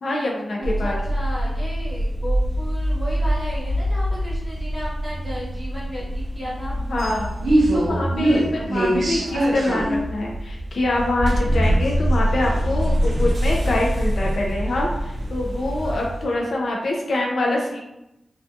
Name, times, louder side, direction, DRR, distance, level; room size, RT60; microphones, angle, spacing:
voice 1, 0.0-1.0 6.9-7.3 7.7-17.8, left 1 dB, 60° left, -1 dB, 0.3 m, -25 dB
voice 2, 0.6-6.8 8.5-8.7 9.1-9.4 15.8-16.0, equal, 5° right, -9 dB, 1.0 m, -34 dB
sound 1, 0.6-16.3, equal, 60° right, 0.4 m, -23 dB
2.3 x 2.3 x 2.5 m, 0.89 s
wide cardioid pair, 165°, 0 cm